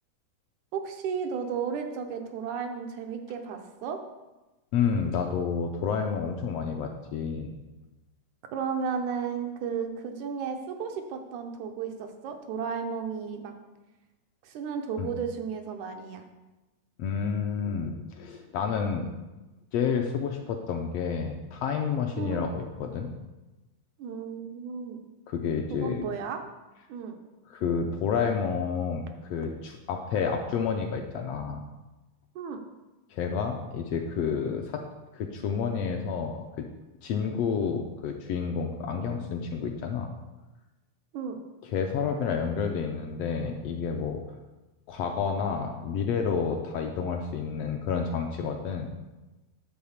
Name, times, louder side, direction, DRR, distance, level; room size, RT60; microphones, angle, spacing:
voice 1, 0.7-4.0 8.5-13.5 14.4-16.2 22.2-22.4 24.0-25.0 25.7-26.4 26.9-27.2 32.4-32.6 41.1-41.4, right 6 dB, 85° right, 5 dB, 2.3 m, -33 dB
voice 2, 4.7-7.5 15.0-15.1 17.0-19.1 19.7-23.1 25.3-26.0 27.5-29.0 29.3-31.6 33.1-34.8 35.1-36.6 37.0-40.1 41.6-44.2 44.9-48.9, left 6 dB, 75° left, 4 dB, 1.5 m, -30 dB
10.0 x 4.1 x 7.2 m, 1.1 s
omnidirectional pair, 3.3 m